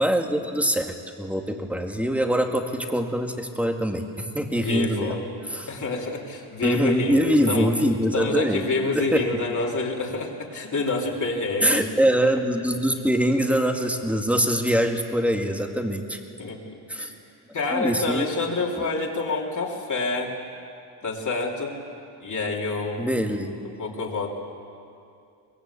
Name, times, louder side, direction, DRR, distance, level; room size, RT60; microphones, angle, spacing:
voice 1, 0.0-5.2 5.5-5.7 6.6-8.7 8.9-9.4 11.6-16.2 16.9-17.1 17.7-18.3 18.8-18.9 23.0-23.6, equal, 5° right, 4 dB, 2.2 m, -23 dB
voice 2, 4.5-5.2 5.7-7.7 8.1-11.9 16.4-17.1 17.5-20.3 21.0-21.8 22.2-23.1 23.8-24.4, left 3 dB, 40° left, -1 dB, 3.5 m, -28 dB
24.0 x 20.5 x 8.4 m, 2.5 s
cardioid pair, 105°, 46 cm